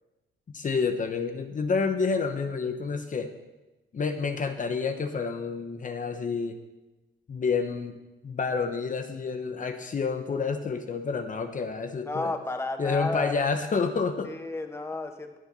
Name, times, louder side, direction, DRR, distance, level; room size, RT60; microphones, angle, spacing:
voice 1, 0.5-3.3 3.9-6.6 7.3-7.9 8.2-12.3 12.8-14.3, left 5 dB, 40° left, 7 dB, 1.2 m, -29 dB
voice 2, 12.1-13.5 14.3-15.4, left 2 dB, 15° left, 6 dB, 1.3 m, -32 dB
19.0 x 7.1 x 5.5 m, 1.1 s
cardioid pair, 90°, 20 cm